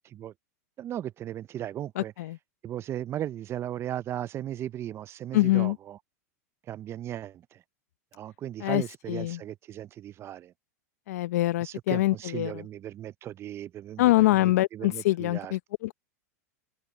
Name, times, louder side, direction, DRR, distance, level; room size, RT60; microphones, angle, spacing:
voice 1, 0.8-2.1 2.6-6.0 6.7-7.6 8.1-10.5 11.6-15.5, right 11 dB, 30° right, 0.5 m, -37 dB
voice 2, 2.0-2.4 5.3-5.8 8.6-8.8 9.1-9.4 11.1-12.6 14.0-15.9, left 17 dB, 70° left, 0.8 m, -24 dB
hypercardioid pair, 115°, 9 cm